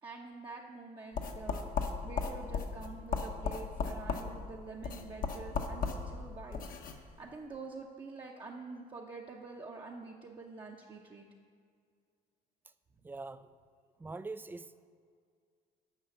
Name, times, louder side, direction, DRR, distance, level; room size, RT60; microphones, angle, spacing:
voice 1, 0.0-6.6 6.9-11.3, right 3 dB, 30° right, -2 dB, 0.8 m, -47 dB
sound 1, 1.1-7.0, left 5 dB, 55° left, 0.9 m, -36 dB
voice 2, 13.0-13.5 14.0-14.9, right 3 dB, 10° right, 13 dB, 0.3 m, -43 dB
9.1 x 5.6 x 7.7 m, 2.1 s
cardioid pair, 110°, 17 cm